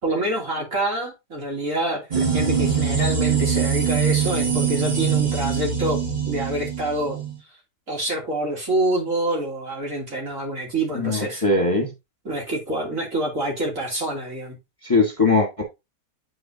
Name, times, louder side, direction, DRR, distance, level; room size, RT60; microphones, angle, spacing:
voice 1, 0.0-6.0 6.3-7.2 7.9-11.4 12.2-14.5, right 1 dB, 60° right, 3.3 m, -26 dB
sound 1, 2.1-7.4, right 7 dB, 30° right, 1.5 m, -23 dB
voice 2, 10.9-11.9 14.8-15.6, left 3 dB, 20° left, 1.5 m, -20 dB
10.0 x 4.4 x 2.8 m
omnidirectional pair, 1.6 m